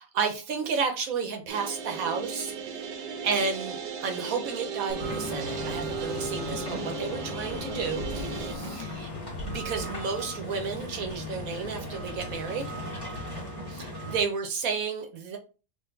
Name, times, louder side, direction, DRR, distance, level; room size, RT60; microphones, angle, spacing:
voice 1, 0.1-2.9 3.2-9.1 9.5-12.7 13.7-15.4, right 5 dB, 65° right, 5 dB, 1.0 m, -32 dB
sound 1, 1.5-8.5, right 6 dB, 85° right, 1.3 m, -36 dB
sound 2, 4.9-11.3, left 7 dB, 80° left, 1.3 m, -44 dB
sound 3, 5.0-14.2, left 1 dB, 15° left, 1.4 m, -37 dB
3.7 x 2.5 x 3.8 m, 0.33 s
omnidirectional pair, 1.8 m